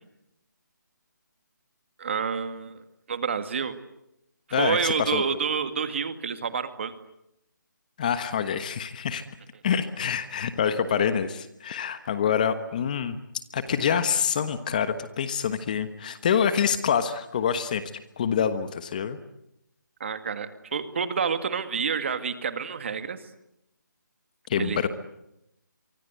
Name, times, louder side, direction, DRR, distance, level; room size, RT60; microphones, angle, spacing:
voice 1, 2.0-2.8 3.1-3.8 4.6-6.9 20.0-23.2 24.6-24.9, right 6 dB, 35° right, 10 dB, 2.0 m, -28 dB
voice 2, 4.5-5.2 8.0-9.2 9.6-13.2 13.5-17.8 18.2-19.2 24.5-24.9, left 7 dB, 25° left, 11 dB, 1.3 m, -26 dB
27.0 x 24.5 x 8.2 m, 0.83 s
hypercardioid pair, 170°, 10 cm